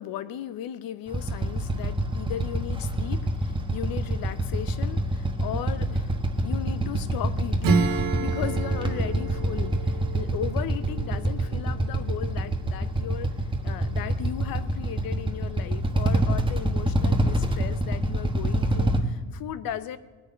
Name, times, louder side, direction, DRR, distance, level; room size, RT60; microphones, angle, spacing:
voice 1, 0.0-6.1 6.4-13.4 13.6-20.0, left 11 dB, 80° left, 15 dB, 0.8 m, -36 dB
Motorcycle / Idling, 1.1-19.0, right 1 dB, 15° right, 1.3 m, -26 dB
Acoustic guitar / Strum, 7.6-11.9, right 4 dB, 75° right, 1.9 m, -30 dB
18.5 x 6.5 x 9.8 m, 1.4 s
cardioid pair, 115°, 35 cm